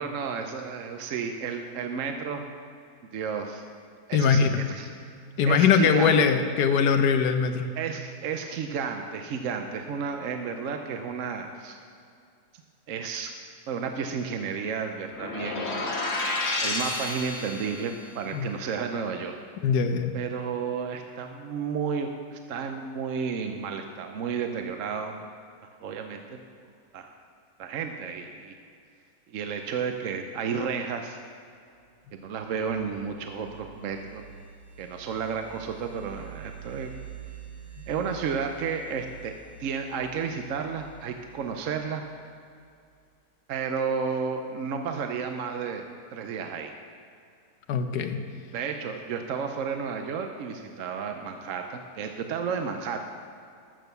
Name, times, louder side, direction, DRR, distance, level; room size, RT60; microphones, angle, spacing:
voice 1, 0.0-2.4 3.1-3.6 4.1-4.9 5.5-6.2 7.8-11.8 12.9-13.3 13.7-15.9 16.6-19.3 20.1-25.1 25.8-26.4 26.9-27.1 27.6-28.5 29.3-31.2 32.1-34.2 34.8-36.9 37.9-39.3 39.6-42.0 43.5-45.8 46.1-46.7 48.5-53.0, right 6 dB, 65° right, 5 dB, 0.9 m, -32 dB
voice 2, 4.1-4.6 5.4-7.7 18.3-18.5 19.6-20.2 47.7-48.2, left 6 dB, 85° left, 7 dB, 1.3 m, -22 dB
sound 1, 15.1-17.9, left 2 dB, 45° left, 1.5 m, -30 dB
sound 2, 32.0-42.6, right 8 dB, 80° right, 3.8 m, -47 dB
12.5 x 6.5 x 6.8 m, 2.4 s
omnidirectional pair, 1.7 m